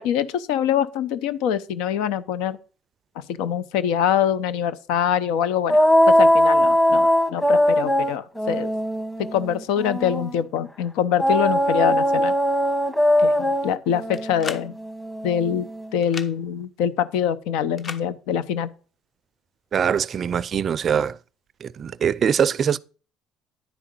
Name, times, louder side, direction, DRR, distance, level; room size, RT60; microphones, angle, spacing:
voice 1, 0.0-2.6 3.3-8.7 9.2-12.3 13.2-14.7 15.2-18.7, left 9 dB, 80° left, 0.7 m, -24 dB
sound 1, 5.7-10.3 11.2-15.9, equal, 10° left, 1.2 m, -20 dB
sound 2, 14.1-14.7 16.0-16.3 17.8-18.0, left 5 dB, 40° left, 1.0 m, -34 dB
voice 2, 19.7-21.2 21.6-22.8, right 8 dB, 45° right, 0.4 m, -22 dB
10.5 x 4.8 x 5.4 m
supercardioid pair, 85°, 0 cm